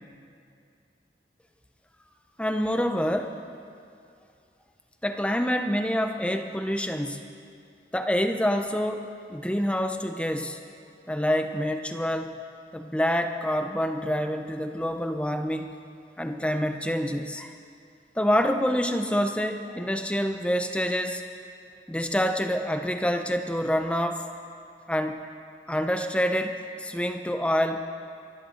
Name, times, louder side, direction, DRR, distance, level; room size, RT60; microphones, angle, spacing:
voice 1, 2.4-3.4 5.0-7.2 7.9-10.6 11.1-12.3 12.7-15.7 16.2-17.5 18.2-21.2 21.9-24.3 24.9-25.1 25.7-27.9, equal, 5° left, 6 dB, 0.7 m, -27 dB
24.0 x 13.5 x 3.9 m, 2.4 s
head